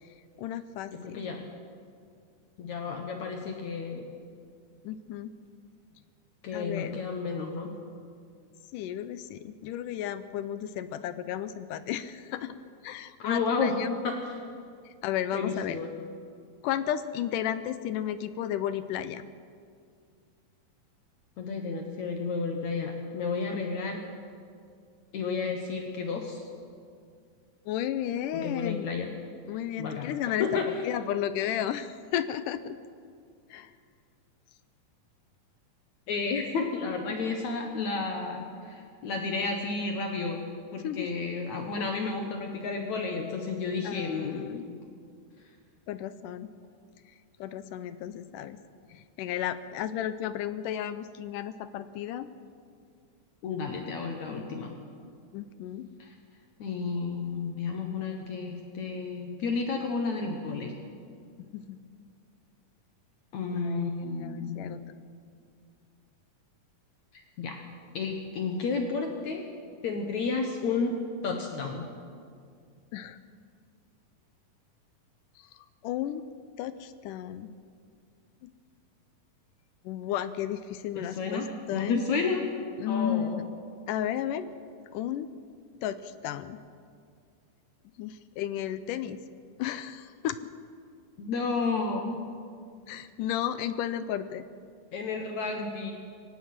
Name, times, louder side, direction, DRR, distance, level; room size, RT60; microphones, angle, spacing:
voice 1, 0.0-1.2 4.8-5.4 6.5-7.0 8.7-12.6 12.8-13.9 14.9-15.8 16.6-19.2 27.7-28.9 29.5-32.8 33.5-33.8 40.8-41.1 43.8-44.7 45.9-46.5 47.1-48.6 48.9-52.3 55.3-55.9 61.4-61.8 63.5-63.9 64.2-64.8 72.9-73.2 75.4-76.3 76.6-77.5 78.4-78.5 79.8-82.1 82.8-83.5 83.9-84.5 84.9-85.3 85.8-86.6 88.0-89.2 89.6-90.4 92.9-94.4, left 10 dB, 80° left, 13 dB, 2.1 m, -33 dB
voice 2, 0.9-1.4 2.6-4.1 6.4-7.7 13.2-13.7 14.0-14.4 15.3-15.9 21.4-24.0 25.1-26.5 28.3-29.1 29.8-30.1 30.4-30.7 36.1-40.4 40.7-44.7 53.4-54.7 56.0-56.1 56.6-60.8 63.3-64.8 67.1-67.6 67.9-69.4 69.8-71.0 71.2-71.9 81.0-82.4 82.9-83.4 91.2-92.2 94.9-95.9, left 4 dB, 60° left, 3 dB, 2.3 m, -32 dB
23.5 x 18.5 x 6.0 m, 2.2 s
omnidirectional pair, 4.0 m